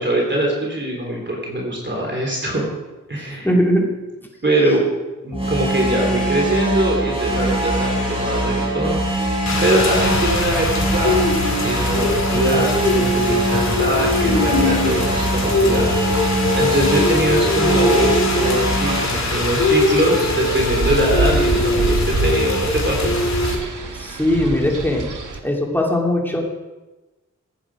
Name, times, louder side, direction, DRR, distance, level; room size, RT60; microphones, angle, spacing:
voice 1, 0.0-2.7 3.1-3.5 4.4-4.8 5.2-9.0 9.6-11.2 11.6-15.9 16.5-23.1, right 1 dB, 35° right, -1 dB, 3.5 m, -22 dB
voice 2, 3.3-3.9 23.9-25.1 25.4-26.4, left 1 dB, 5° left, -1 dB, 2.8 m, -19 dB
sound 1, 5.3-19.0, right 1 dB, 15° right, 5.2 m, -22 dB
Rain, 9.5-23.6, left 2 dB, 60° left, 2.4 m, -21 dB
Wind, 18.8-25.4, right 4 dB, 75° right, 1.3 m, -26 dB
16.0 x 8.9 x 4.9 m, 1.1 s
cardioid pair, 60°, 31 cm